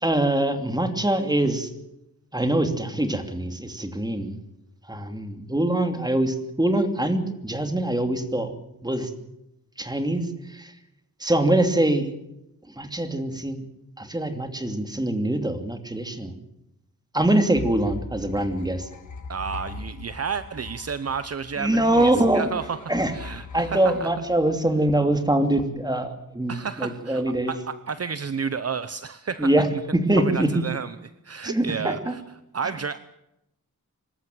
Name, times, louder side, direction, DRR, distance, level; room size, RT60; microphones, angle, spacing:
voice 1, 0.0-1.7 2.3-4.3 4.9-8.5 8.8-9.1 9.8-10.7 11.2-12.1 12.8-13.6 14.0-16.3 17.1-18.9 21.6-22.5 22.9-23.1 23.5-27.5 29.4-30.5 31.4-32.1, right 1 dB, 10° right, 7 dB, 2.8 m, -23 dB
sound 1, 17.5-25.1, left 3 dB, 60° left, 2.2 m, -40 dB
voice 2, 19.3-22.8 23.1-24.1 26.5-29.8 30.2-32.2 32.5-33.0, right 6 dB, 45° right, 13 dB, 0.9 m, -31 dB
25.5 x 14.0 x 9.3 m, 0.86 s
wide cardioid pair, 95°, 34 cm